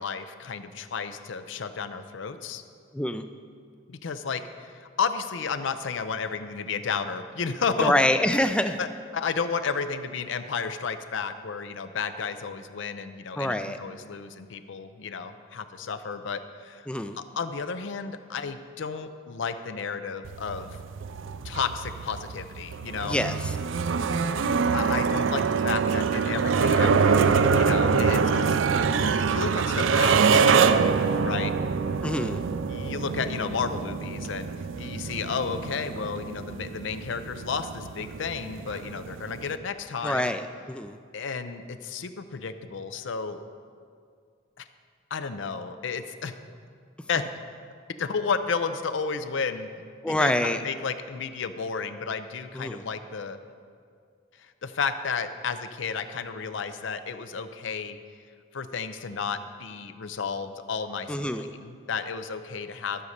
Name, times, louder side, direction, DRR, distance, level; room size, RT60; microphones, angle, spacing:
voice 1, 0.0-2.6 3.9-7.9 8.8-8.9 9.1-16.9 17.4-20.8 21.4-23.2 24.7-27.2 27.5-28.6 29.3-31.5 32.7-34.5 34.8-40.3 41.1-43.4 44.6-44.7 45.1-46.3 47.1-47.2 48.0-49.7 50.2-53.4 54.6-58.0 58.5-63.0, left 5 dB, 65° left, 10 dB, 0.5 m, -32 dB
voice 2, 2.9-3.3 7.8-8.8 13.4-13.8 16.9-17.2 23.0-23.6 24.0-24.2 32.0-32.4 40.0-41.0 50.0-50.6 52.5-52.9 61.1-61.5, left 1 dB, 5° left, 9 dB, 0.3 m, -26 dB
sound 1, 20.2-39.6, right 5 dB, 70° right, 0.4 m, -25 dB
12.5 x 5.3 x 6.5 m, 2.2 s
head